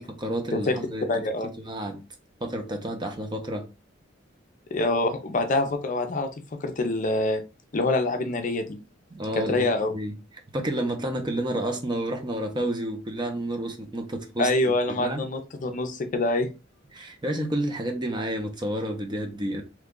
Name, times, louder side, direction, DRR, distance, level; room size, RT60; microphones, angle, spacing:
voice 1, 0.0-1.1 1.6-2.0 2.4-3.7 9.1-10.2 10.5-15.2 16.9-19.6, right 1 dB, 25° right, 0.6 m, -30 dB
voice 2, 1.1-1.5 4.7-6.3 6.6-7.4 7.7-8.7 9.4-9.9 14.4-16.5, left 2 dB, 40° left, 0.5 m, -25 dB
3.0 x 2.3 x 3.6 m
head